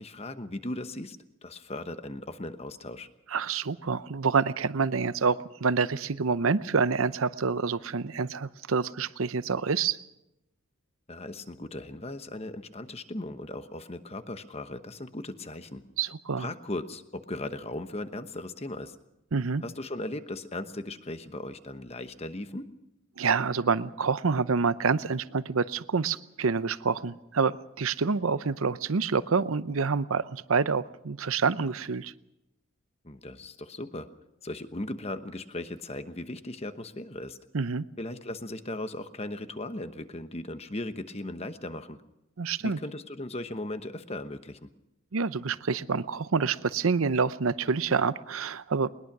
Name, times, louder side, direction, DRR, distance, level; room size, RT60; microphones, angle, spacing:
voice 1, 0.0-3.1 11.1-15.8 16.4-19.0 19.6-22.7 33.0-34.1 34.4-37.4 38.0-42.0 42.6-44.6, left 2 dB, 30° left, 10 dB, 1.1 m, -37 dB
voice 2, 3.3-10.0 16.0-16.5 19.3-19.6 23.2-32.1 37.5-37.8 42.4-42.8 45.1-48.9, right 5 dB, 75° right, 15 dB, 0.7 m, -27 dB
21.0 x 20.5 x 6.1 m, 0.89 s
head